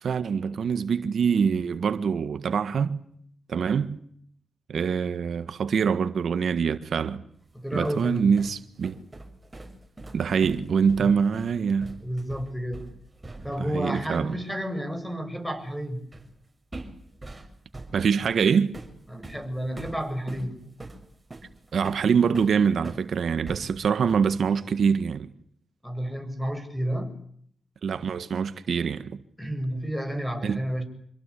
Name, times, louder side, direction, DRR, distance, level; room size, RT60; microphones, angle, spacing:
voice 1, 0.0-3.0 3.5-4.0 4.7-7.2 7.7-9.0 10.1-12.0 13.6-14.4 17.9-18.7 21.7-25.3 27.8-29.2 30.4-30.6, right 6 dB, 75° right, 1.6 m, -24 dB
voice 2, 7.5-8.3 11.0-11.1 12.0-12.9 13.4-16.1 19.1-20.6 25.8-27.1 29.4-30.8, equal, 5° left, 8.0 m, -31 dB
sound 1, 7.5-13.7 14.0-14.2 16.1-16.4 16.7-23.1 23.5-24.4, right 2 dB, 25° right, 6.7 m, -42 dB
27.0 x 22.0 x 8.5 m
cardioid pair, 60°, 0 cm